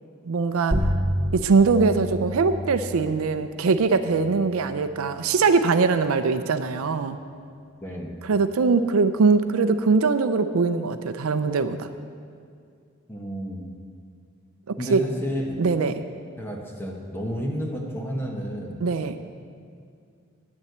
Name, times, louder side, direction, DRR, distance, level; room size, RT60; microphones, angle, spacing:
voice 1, 0.3-0.9 1.3-7.2 8.2-11.9 14.7-15.0 15.6-16.1 18.8-19.2, right 4 dB, 85° right, 10 dB, 0.5 m, -22 dB
sound 1, 0.7-5.8, equal, 30° right, 0.8 m, -30 dB
voice 2, 7.8-8.2 13.1-13.6 14.8-15.5 16.4-18.8, equal, 10° left, 0 dB, 1.1 m, -31 dB
9.6 x 7.3 x 7.9 m, 2.3 s
head